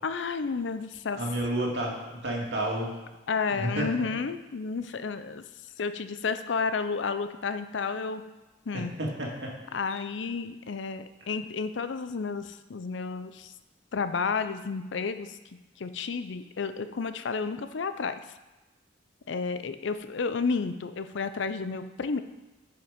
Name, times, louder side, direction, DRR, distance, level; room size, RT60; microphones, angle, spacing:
voice 1, 0.0-1.2 3.3-5.4 5.8-8.2 8.7-8.9 9.7-13.5 13.9-15.4 15.8-18.2 19.3-22.2, left 5 dB, 75° left, 11 dB, 0.5 m, -31 dB
voice 2, 1.1-2.9 3.5-3.9 8.7-9.5, right 1 dB, 70° right, -3 dB, 2.3 m, -31 dB
10.0 x 5.8 x 5.1 m, 1.1 s
head